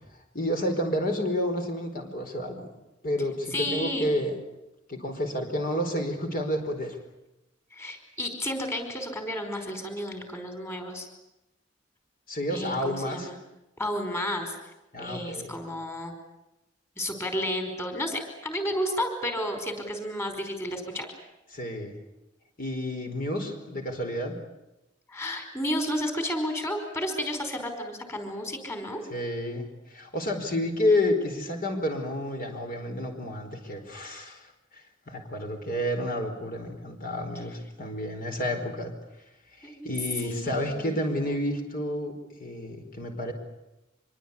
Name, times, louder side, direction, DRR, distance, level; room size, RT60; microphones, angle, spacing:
voice 1, 0.3-2.7 3.0-4.3 4.9-7.0 12.3-13.3 14.9-15.5 21.5-21.9 22.6-24.4 29.1-34.4 35.1-38.9 39.6-42.1 42.4-43.3, left 1 dB, 50° left, 4 dB, 4.7 m, -30 dB
voice 2, 3.5-4.1 7.7-11.1 12.5-13.3 13.8-14.5 15.0-16.1 17.0-21.1 25.1-29.0 39.6-39.9 40.2-40.9, equal, 15° left, 6 dB, 4.9 m, -32 dB
25.5 x 23.5 x 8.6 m, 0.93 s
head